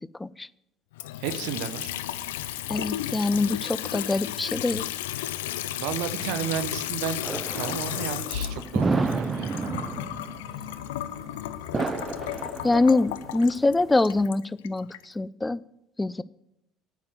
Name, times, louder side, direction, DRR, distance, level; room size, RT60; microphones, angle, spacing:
Water tap faucet / Sink (filling or washing) / Trickle dribble, 0.9-15.0, left 13 dB, 85° left, 0.4 m, -33 dB
voice 1, 1.2-1.9 5.7-7.2 7.5-10.0, right 10 dB, 75° right, 10 dB, 0.7 m, -33 dB
voice 2, 2.7-4.8 12.6-15.6 16.0-16.2, left 2 dB, 15° left, 19 dB, 0.4 m, -24 dB
sound 1, 7.2-14.3, right 4 dB, 25° right, 0.6 m, -31 dB
8.6 x 6.0 x 7.6 m, 0.80 s
hypercardioid pair, 65°, 0 cm